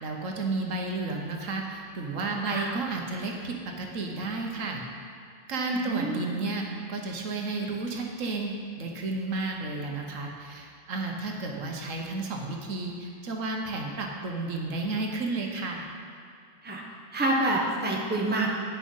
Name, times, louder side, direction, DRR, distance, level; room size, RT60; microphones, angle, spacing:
voice 1, 0.0-4.8 5.5-15.9, right 3 dB, 75° right, 1 dB, 1.4 m, -32 dB
voice 2, 5.7-6.3 16.6-16.8 17.1-18.5, right 2 dB, 10° right, -2 dB, 0.9 m, -27 dB
9.7 x 6.3 x 5.4 m, 2.3 s
omnidirectional pair, 1.4 m